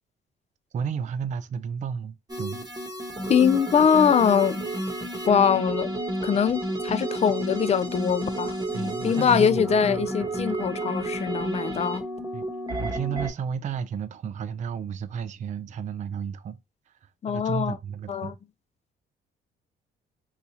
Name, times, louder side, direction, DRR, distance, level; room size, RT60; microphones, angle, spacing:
voice 1, 0.7-2.6 8.7-10.1 10.4-10.5 12.3-12.4 12.8-16.6 17.3-18.3, right 7 dB, 40° right, 0.4 m, -32 dB
sound 1, 2.3-13.3, right 1 dB, 20° right, 1.0 m, -31 dB
voice 2, 3.3-4.6 5.3-5.9 6.2-8.6 9.0-12.0 17.2-17.8 18.1-18.3, left 7 dB, 35° left, 0.4 m, -22 dB
2.8 x 2.4 x 4.1 m
cardioid pair, 90°, 20 cm